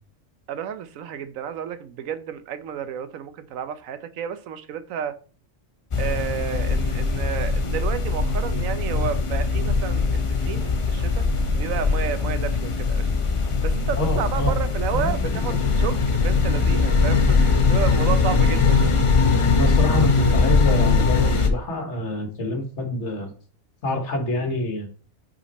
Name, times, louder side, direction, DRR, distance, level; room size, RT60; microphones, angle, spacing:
voice 1, 0.5-5.2 6.0-11.3 11.6-13.1 13.6-18.9, right 8 dB, 80° right, 1.1 m, -31 dB
sound 1, 5.9-21.5, left 4 dB, 35° left, 0.5 m, -21 dB
voice 2, 14.0-14.6 14.9-15.4 19.6-23.3 23.8-24.9, left 1 dB, 60° left, 1.5 m, -27 dB
5.6 x 4.3 x 4.1 m
omnidirectional pair, 1.4 m